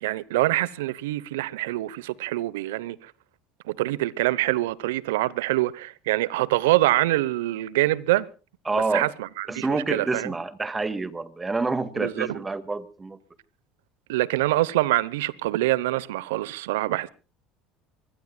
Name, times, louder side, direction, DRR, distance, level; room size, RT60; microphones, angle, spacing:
voice 1, 0.0-3.1 3.7-8.3 8.7-10.3 12.0-12.4 14.1-17.1, right 17 dB, 80° right, 0.9 m, -25 dB
voice 2, 8.7-9.1 9.5-13.2, right 3 dB, 20° right, 1.9 m, -28 dB
25.0 x 20.5 x 2.3 m
hypercardioid pair, 75°, 0 cm